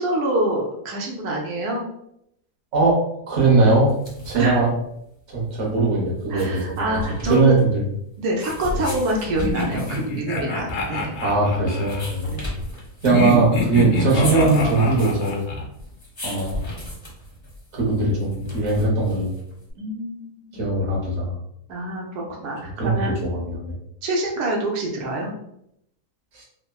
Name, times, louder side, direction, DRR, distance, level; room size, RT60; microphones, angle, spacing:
voice 1, 0.0-1.8 4.3-4.6 6.3-7.5 8.2-11.2 12.3-12.4 19.8-20.6 21.7-23.1 24.0-25.3, right 1 dB, 90° right, -1 dB, 1.2 m, -26 dB
voice 2, 3.3-3.9 4.2-4.7 5.3-7.0 7.3-7.8 8.7-8.8 11.2-12.5 13.0-15.4 16.2-16.6 17.7-19.3 20.5-21.3 22.8-23.7 26.3-26.4, right 3 dB, 55° right, -4 dB, 1.1 m, -20 dB
sound 1, 3.8-19.7, left 1 dB, 30° left, 0.6 m, -37 dB
sound 2, 9.4-12.1 13.0-15.6, left 2 dB, 65° left, 0.7 m, -26 dB
3.4 x 2.0 x 2.2 m, 0.76 s
omnidirectional pair, 1.6 m